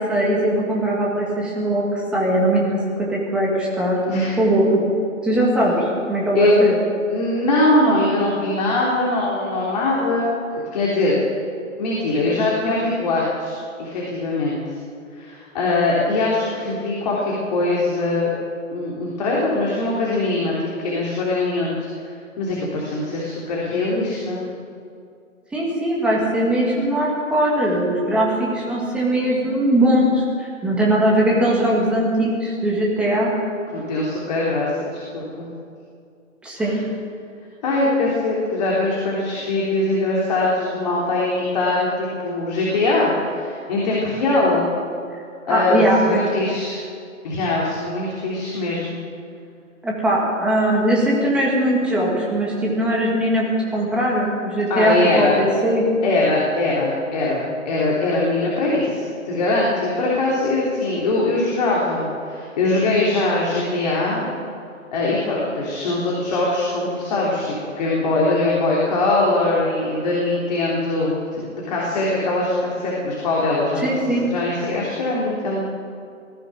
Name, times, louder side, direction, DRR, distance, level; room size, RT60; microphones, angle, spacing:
voice 1, 0.0-1.9 2.1-4.0 4.4-4.8 5.2-6.7 25.5-33.3 36.4-36.8 45.5-46.2 49.8-53.5 53.7-55.9 73.8-74.2, right 1 dB, 5° right, -4 dB, 1.9 m, -20 dB
voice 2, 7.1-11.2 11.8-14.6 15.1-18.3 18.7-24.4 33.7-35.4 36.6-36.7 37.6-44.7 45.5-46.8 47.2-49.0 54.7-55.4 56.0-64.3 64.9-71.4 71.7-75.6, left 2 dB, 30° left, -5 dB, 3.4 m, -22 dB
19.5 x 15.0 x 9.1 m, 2.4 s
hypercardioid pair, 165°, 40 cm